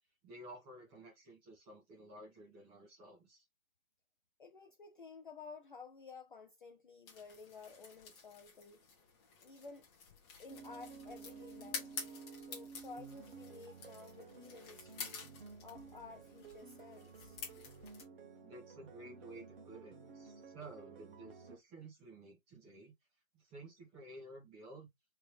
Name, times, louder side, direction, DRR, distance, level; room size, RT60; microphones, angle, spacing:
voice 1, 0.2-3.4 18.4-22.9 23.3-24.9, right 1 dB, 15° right, 1.5 m, -53 dB
voice 2, 4.4-8.8 9.4-9.9 10.4-15.2 15.6-17.4, left 4 dB, 40° left, 0.5 m, -53 dB
sound 1, 7.1-18.0, left 5 dB, 20° left, 1.1 m, -50 dB
sound 2, 10.5-21.6, right 5 dB, 40° right, 1.3 m, -53 dB
4.0 x 3.4 x 3.2 m
hypercardioid pair, 150°, 41 cm